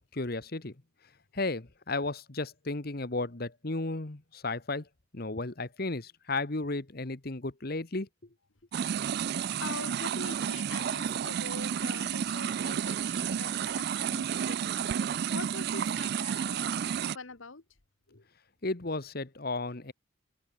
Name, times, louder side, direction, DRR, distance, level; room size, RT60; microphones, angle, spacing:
voice 1, 0.1-0.7 1.3-4.8 5.1-8.1 18.6-19.9, left 2 dB, 50° left, 1.3 m, -34 dB
sound 1, 8.7-17.2, right 8 dB, 50° right, 0.3 m, -31 dB
voice 2, 9.6-17.6 18.1-18.3, left 3 dB, 75° left, 1.7 m, -44 dB
open air
head